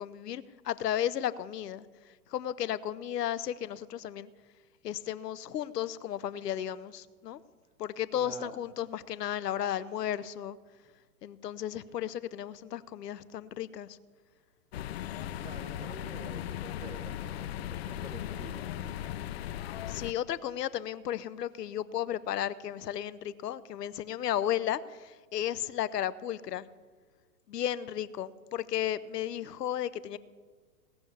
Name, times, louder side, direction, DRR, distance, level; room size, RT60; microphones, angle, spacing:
voice 1, 0.0-1.9 2.3-4.3 4.8-7.4 7.8-10.6 11.2-14.0 19.9-26.6 27.5-30.2, left 11 dB, 85° left, 17 dB, 0.8 m, -34 dB
voice 2, 8.1-8.6 15.4-19.5, right 3 dB, 10° right, 5 dB, 0.9 m, -48 dB
sound 1, 14.7-20.1, left 12 dB, 45° left, 0.4 m, -38 dB
18.0 x 7.0 x 7.0 m, 1.4 s
hypercardioid pair, 140°, 47 cm